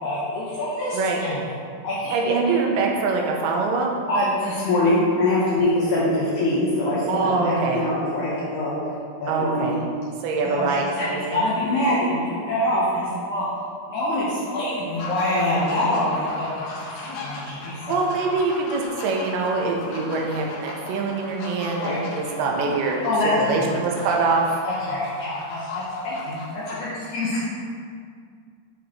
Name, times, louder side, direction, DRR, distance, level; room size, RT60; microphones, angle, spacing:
voice 1, 0.0-1.5 1.8-2.1 2.4-2.6 4.1-8.7 9.2-9.7 10.4-13.5 13.9-18.0 21.8-22.0 23.0-23.7 24.6-27.4, left 1 dB, 90° left, -7 dB, 1.7 m, -24 dB
voice 2, 2.1-3.9 7.1-7.9 9.3-9.8 10.2-11.4 17.9-24.5, right 4 dB, 80° right, 0 dB, 2.0 m, -24 dB
sound 1, 14.9-26.7, left 3 dB, 70° left, 2.2 m, -37 dB
10.0 x 4.1 x 2.9 m, 2.2 s
omnidirectional pair, 4.7 m